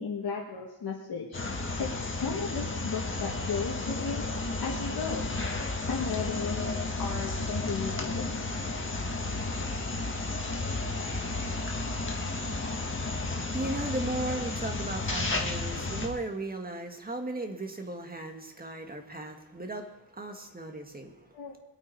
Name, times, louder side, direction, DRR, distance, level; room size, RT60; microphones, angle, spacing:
voice 1, 0.0-4.2 4.6-5.3 5.9-8.5 9.5-9.7 21.3-21.6, left 5 dB, 55° left, -3 dB, 1.8 m, -35 dB
sound 1, 1.3-16.1, left 2 dB, 25° left, 1.8 m, -32 dB
voice 2, 12.2-21.2, right 2 dB, 20° right, 4 dB, 1.7 m, -37 dB
21.5 x 8.6 x 4.7 m, 0.95 s
wide cardioid pair, 120°, 44 cm